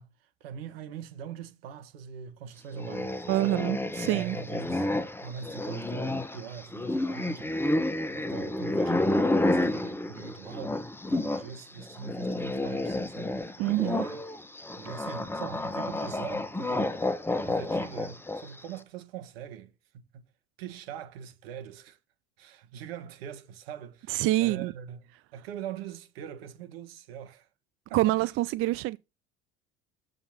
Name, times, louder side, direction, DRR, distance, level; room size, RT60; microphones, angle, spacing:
voice 1, 0.0-3.6 4.0-4.9 5.2-7.7 8.1-14.2 14.8-17.1 17.4-20.3 20.6-22.0 22.4-27.5 27.9-28.1, right 8 dB, 75° right, 1.5 m, -42 dB
sound 1, 2.7-11.5 11.8-18.6, left 2 dB, 5° left, 1.1 m, -30 dB
voice 2, 3.3-4.4 13.6-14.0 24.1-24.7 27.9-29.0, right 17 dB, 45° right, 0.4 m, -26 dB
7.2 x 3.9 x 5.8 m
hypercardioid pair, 70°, 30 cm